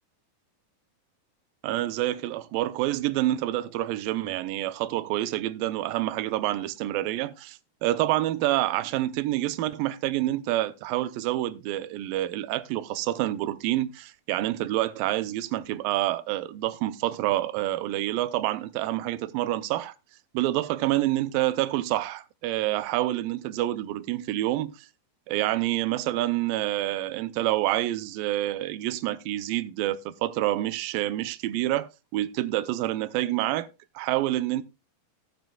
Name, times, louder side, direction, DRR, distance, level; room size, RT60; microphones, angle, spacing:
voice 1, 1.6-19.9 20.3-24.9 25.3-33.7 34.0-34.6, right 15 dB, 75° right, 2.4 m, -27 dB
16.5 x 9.2 x 2.3 m
omnidirectional pair, 4.3 m